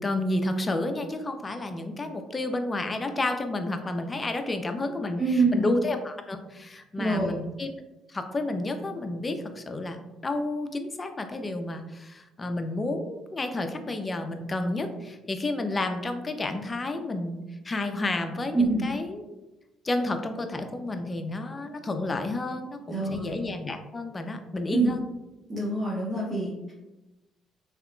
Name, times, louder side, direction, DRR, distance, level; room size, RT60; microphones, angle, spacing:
voice 1, 0.0-5.2 5.5-7.7 8.1-17.4 17.6-19.2 19.8-25.0, left 2 dB, 30° left, 7 dB, 0.5 m, -31 dB
voice 2, 5.2-5.7 7.0-7.3 18.5-18.9 22.9-23.4 24.7-24.9 25.5-26.7, right 3 dB, 35° right, -6 dB, 0.8 m, -26 dB
3.5 x 2.8 x 2.3 m, 1.0 s
hypercardioid pair, 60°, 0 cm